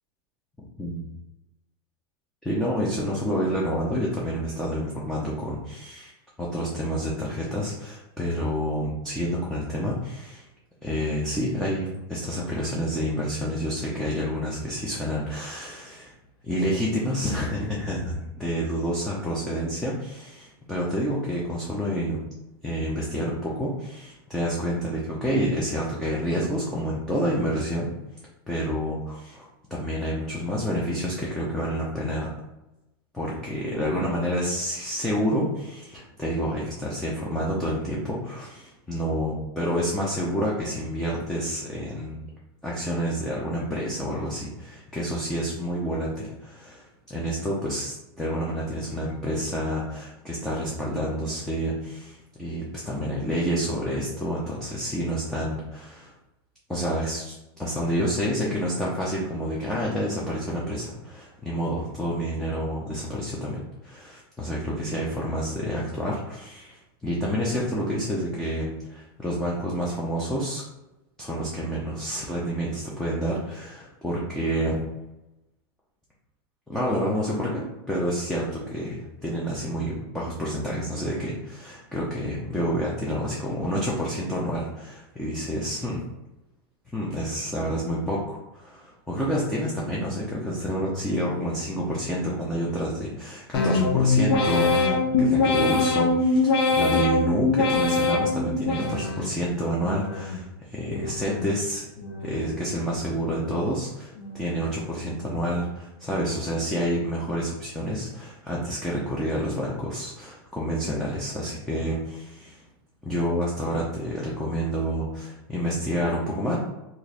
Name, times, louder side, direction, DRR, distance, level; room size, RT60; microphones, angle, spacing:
voice 1, 2.4-6.1 6.4-10.5 10.8-16.1 16.4-22.2 22.6-27.9 28.5-32.3 33.1-42.3 42.6-56.1 56.7-70.6 71.2-74.8 76.7-86.0 86.9-101.9 102.2-112.7 113.0-116.6, equal, 5° left, -5 dB, 0.5 m, -29 dB
sound 1, 93.5-99.4 99.8-100.4 100.9-101.5 102.0-102.6 103.1-103.7 104.2-104.7, left 3 dB, 85° left, 0.7 m, -24 dB
2.9 x 2.5 x 4.0 m, 0.94 s
supercardioid pair, 145°, 12 cm